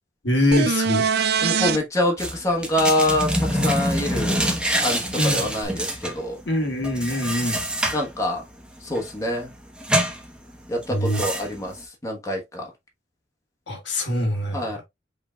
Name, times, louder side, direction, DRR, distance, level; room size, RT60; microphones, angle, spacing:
voice 1, 0.2-1.0 5.2-5.5 6.4-7.6 10.9-11.2 13.7-14.6, left 1 dB, 70° left, 1.6 m, -23 dB
sound 1, 0.5-1.8 5.6-5.7, right 6 dB, 60° right, 0.5 m, -22 dB
voice 2, 1.4-4.5 4.8-6.4 7.9-8.4 8.8-9.5 10.7-12.7 14.5-14.8, left 1 dB, 15° left, 1.2 m, -25 dB
sound 2, 2.2-11.8, equal, 5° right, 0.9 m, -26 dB
5.4 x 3.8 x 2.3 m
head